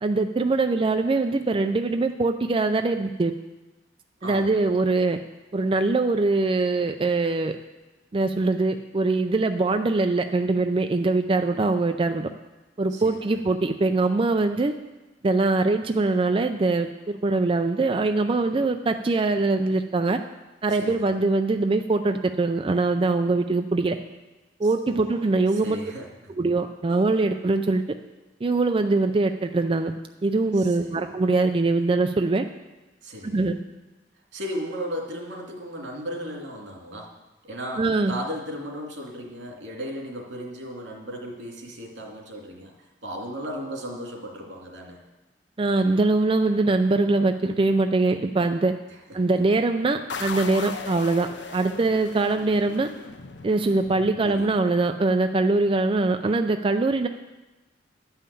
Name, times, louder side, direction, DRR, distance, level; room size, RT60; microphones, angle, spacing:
voice 1, 0.0-3.3 4.2-5.2 5.5-7.6 8.1-12.3 12.8-14.7 15.2-20.2 20.6-24.0 24.6-25.8 26.4-27.8 28.4-29.9 30.2-32.4 33.3-33.6 37.8-38.1 45.6-48.7 49.1-52.9 53.4-57.1, right 3 dB, 30° right, 6 dB, 0.4 m, -23 dB
voice 2, 4.2-4.7 12.9-13.2 20.7-21.1 24.6-26.3 30.5-31.0 33.0-33.5 34.3-37.2 37.4-42.7 43.0-45.0 49.1-49.2 54.2-54.6, equal, 85° right, -1 dB, 2.5 m, -36 dB
sound 1, 50.1-54.6, left 4 dB, 80° left, 0.7 m, -38 dB
11.0 x 5.7 x 8.3 m, 1.1 s
head